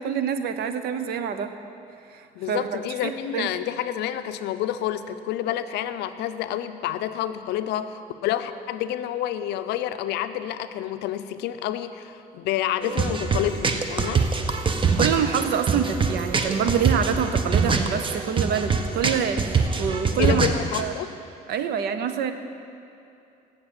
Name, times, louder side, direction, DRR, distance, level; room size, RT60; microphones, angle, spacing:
voice 1, 0.0-1.5 2.5-3.5 15.0-20.5 20.8-20.9 21.5-22.3, right 7 dB, 70° right, 9 dB, 0.6 m, -26 dB
voice 2, 2.4-14.3 20.2-21.1, left 11 dB, 80° left, 11 dB, 0.5 m, -29 dB
sound 1, 12.8-20.8, right 5 dB, 30° right, 0.7 m, -24 dB
7.3 x 7.2 x 7.8 m, 2.7 s
cardioid pair, 110°, 17 cm